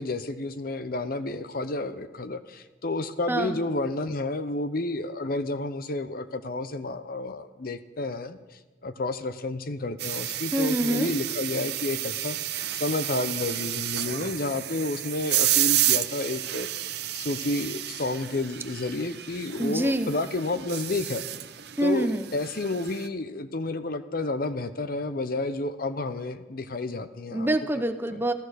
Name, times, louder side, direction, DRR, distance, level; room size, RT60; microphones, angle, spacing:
voice 1, 0.0-21.3 21.8-27.5, left 2 dB, 50° left, 11 dB, 0.7 m, -31 dB
sound 1, 10.0-23.1, right 13 dB, 60° right, 0.7 m, -30 dB
voice 2, 10.5-11.1 19.6-20.1 21.8-22.2 27.3-28.3, right 1 dB, 10° right, 8 dB, 0.7 m, -25 dB
14.5 x 14.0 x 6.4 m, 1.2 s
head